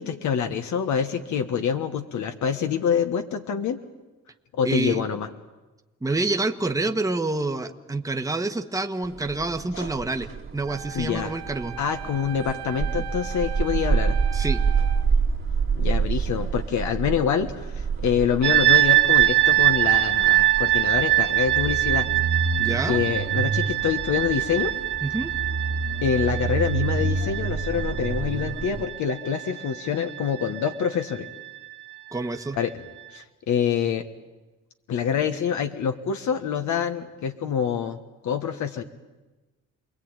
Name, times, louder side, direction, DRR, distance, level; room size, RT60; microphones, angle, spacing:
voice 1, 0.0-3.8 4.5-5.3 9.8-9.9 10.9-11.3 11.8-14.2 15.7-22.1 22.8-24.7 26.0-31.3 32.5-32.8 33.1-34.1 34.9-38.0 38.2-38.8, left 7 dB, 70° left, 6 dB, 1.5 m, -26 dB
voice 2, 4.6-5.0 6.0-11.7 14.3-14.6 22.6-23.0 25.0-25.3 32.1-32.6, right 2 dB, 10° right, 6 dB, 1.4 m, -27 dB
sound 1, 9.1-28.8, right 5 dB, 45° right, 1.9 m, -28 dB
Wind instrument woodwind instrument, 10.7-15.1, right 9 dB, 60° right, 1.3 m, -38 dB
sound 2, 18.4-31.3, right 16 dB, 75° right, 2.1 m, -23 dB
28.5 x 21.0 x 9.0 m, 1.2 s
cardioid pair, 90°, 30 cm